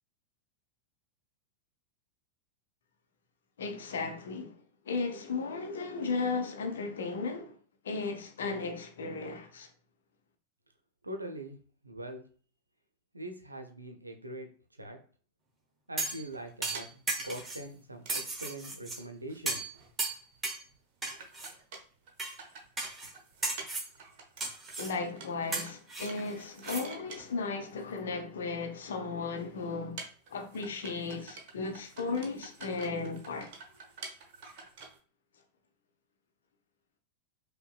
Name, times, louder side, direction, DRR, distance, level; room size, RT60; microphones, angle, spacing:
voice 1, 3.6-4.5 4.9-7.6 7.8-9.7 24.8-30.0 30.3-33.5, left 4 dB, 65° left, 0.7 m, -35 dB
voice 2, 11.0-11.6 11.8-12.3 13.1-14.5 14.8-15.0 15.9-19.7, right 1 dB, 85° right, 0.6 m, -42 dB
sound 1, 16.0-16.3 16.6-17.6 18.1-19.0 19.5-19.7 20.0-20.6 21.0-21.5 22.2-22.3 22.8-23.1 23.4-23.9 24.4-24.9 25.5-26.8 27.2-27.3, right 3 dB, 15° right, 0.8 m, -35 dB
sound 2, 16.1-18.4 18.6-18.7 18.9-19.0 19.3-20.4 20.7-20.8 21.1-28.3 29.0-29.1 29.4-35.0, right 4 dB, 50° right, 0.8 m, -49 dB
5.2 x 2.2 x 2.4 m
figure-of-eight pair, 90°, 0 cm